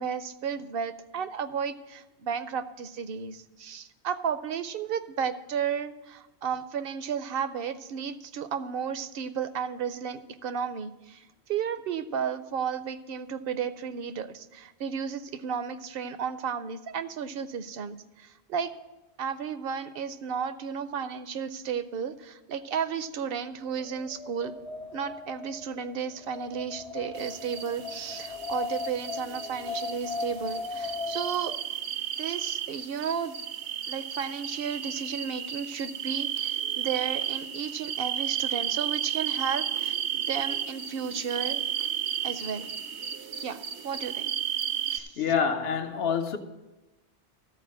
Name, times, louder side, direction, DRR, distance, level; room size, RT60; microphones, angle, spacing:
voice 1, 0.0-11.2 11.5-18.7 19.2-24.5 24.9-31.5 32.2-33.4 33.9-41.6 42.2-42.7 43.4-44.3 44.9-45.2, right 7 dB, 65° right, 0.7 m, -33 dB
Wind, 23.6-31.6, left 4 dB, 45° left, 0.5 m, -37 dB
sound 1, 27.2-45.0, right 10 dB, 85° right, 1.0 m, -33 dB
voice 2, 45.2-46.4, left 7 dB, 65° left, 0.9 m, -26 dB
13.5 x 4.5 x 7.3 m
omnidirectional pair, 1.1 m